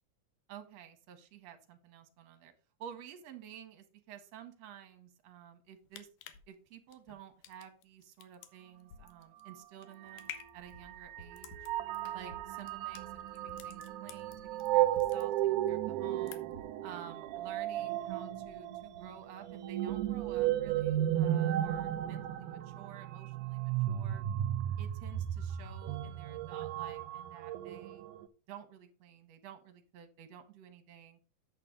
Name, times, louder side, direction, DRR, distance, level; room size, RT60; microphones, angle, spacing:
voice 1, 0.5-2.5 2.8-6.1 6.5-11.5 12.1-16.4 16.8-24.2 24.8-28.1 28.5-31.2, right 9 dB, 65° right, 7 dB, 2.0 m, -51 dB
sound 1, 5.7-14.7 15.0-15.7 16.0-16.7 17.1-17.2, left 11 dB, 90° left, 2.4 m, -51 dB
sound 2, 9.5-9.6 10.0-28.3, right 12 dB, 80° right, 1.9 m, -34 dB
sound 3, 10.6-19.8, right 1 dB, 55° left, 1.4 m, -59 dB
8.9 x 6.6 x 3.7 m, 0.36 s
omnidirectional pair, 3.7 m